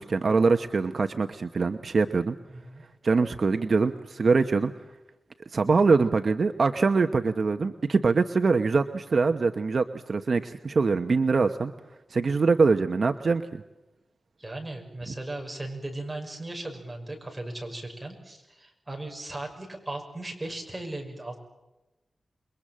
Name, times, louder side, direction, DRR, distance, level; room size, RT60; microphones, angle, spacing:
voice 1, 0.0-2.4 3.0-4.7 5.5-11.7 12.1-13.6, right 4 dB, 55° right, 7 dB, 1.0 m, -23 dB
voice 2, 14.4-21.4, right 2 dB, 15° right, 2 dB, 6.0 m, -37 dB
28.5 x 22.5 x 7.5 m, 1.0 s
wide cardioid pair, 135°, 0 cm